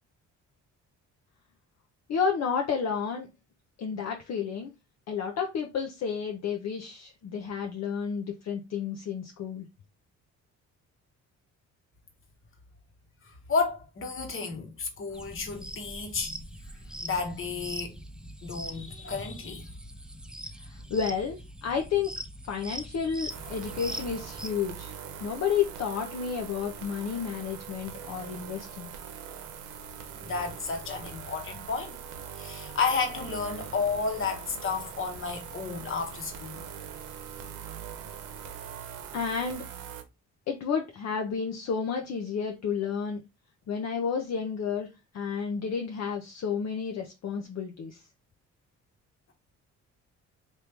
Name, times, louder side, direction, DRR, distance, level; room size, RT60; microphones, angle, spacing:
voice 1, 2.1-3.3 3.8-4.7 5.1-9.7 20.6-22.1 22.5-24.9 25.2-28.9 39.1-39.6 40.5-43.2 43.7-48.0, left 6 dB, 60° left, 0.7 m, -31 dB
voice 2, 13.2-16.4 17.0-19.7 30.2-32.0 32.4-36.6, left 4 dB, 45° left, 1.2 m, -32 dB
sound 1, 15.1-24.5, right 1 dB, 5° right, 0.3 m, -42 dB
sound 2, 23.3-40.0, right 7 dB, 90° right, 0.7 m, -42 dB
3.0 x 2.7 x 3.4 m
cardioid pair, 90°, 30 cm